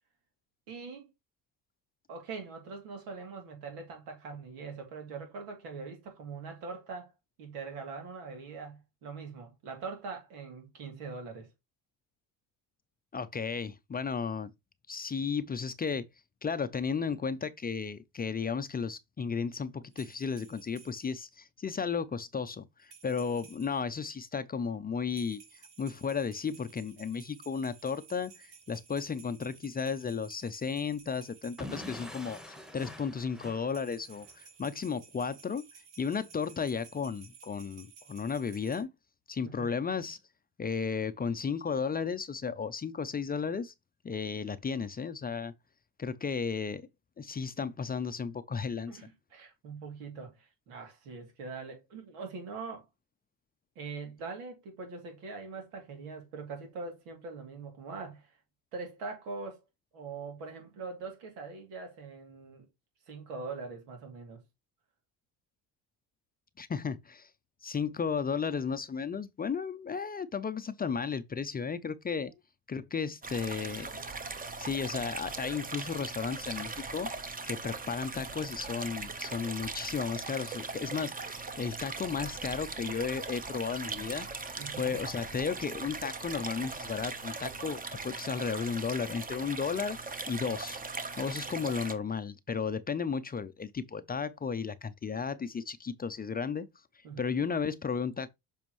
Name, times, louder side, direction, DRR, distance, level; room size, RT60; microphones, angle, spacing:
voice 1, 0.7-1.1 2.1-7.1 7.4-11.5 39.4-39.8 48.9-52.9 53.7-58.4 58.7-59.6 59.9-62.7 63.1-64.4 84.6-85.0 97.0-97.5, right 4 dB, 90° right, 2.8 m, -42 dB
voice 2, 13.1-14.5 14.9-16.1 16.4-35.6 36.0-38.9 39.3-40.2 40.6-43.7 44.0-45.5 46.0-46.9 47.2-49.0 66.6-67.3 67.6-72.3 72.7-73.9 74.6-84.3 84.8-90.0 90.3-90.8 91.2-96.7 97.2-98.3, left 6 dB, 20° left, 0.5 m, -34 dB
sound 1, 19.9-21.2 22.8-23.9 25.1-31.8 33.7-38.8, right 6 dB, 75° right, 2.2 m, -55 dB
Explosion / Shatter, 31.6-34.4, left 1 dB, ahead, 1.2 m, -45 dB
sound 2, 73.2-91.9, right 4 dB, 20° right, 0.9 m, -40 dB
7.3 x 4.2 x 3.1 m
supercardioid pair, 85°, 43 cm